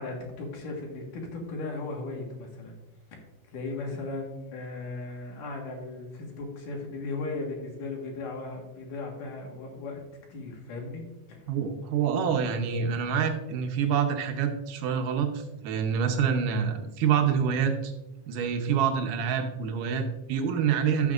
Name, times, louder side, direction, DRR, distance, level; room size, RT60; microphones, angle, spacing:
voice 1, 0.0-2.7 3.1-3.2 3.5-10.0 10.3-11.0 11.3-11.4 20.4-20.7, left 3 dB, 85° left, 1 dB, 3.2 m, -37 dB
voice 2, 11.5-17.9 18.3-21.1, right 7 dB, 85° right, 5 dB, 2.5 m, -27 dB
13.0 x 6.3 x 2.5 m, 0.95 s
omnidirectional pair, 3.6 m